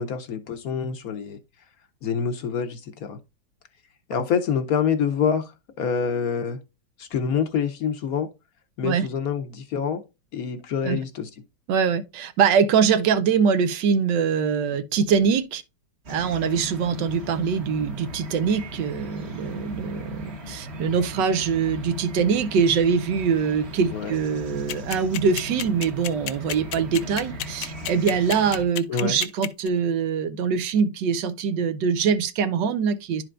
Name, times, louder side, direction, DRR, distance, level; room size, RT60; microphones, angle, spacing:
voice 1, 0.0-1.4 2.0-3.2 4.1-6.6 7.0-8.3 8.8-10.0 10.3-11.3 23.9-24.1 28.9-29.2, left 7 dB, 65° left, 1.0 m, -26 dB
voice 2, 11.7-15.6 16.1-33.2, right 6 dB, 80° right, 1.4 m, -23 dB
sound 1, 16.0-28.6, equal, 40° right, 1.3 m, -38 dB
sound 2, 24.7-29.7, left 12 dB, 85° left, 1.4 m, -30 dB
11.5 x 4.5 x 2.4 m
omnidirectional pair, 2.0 m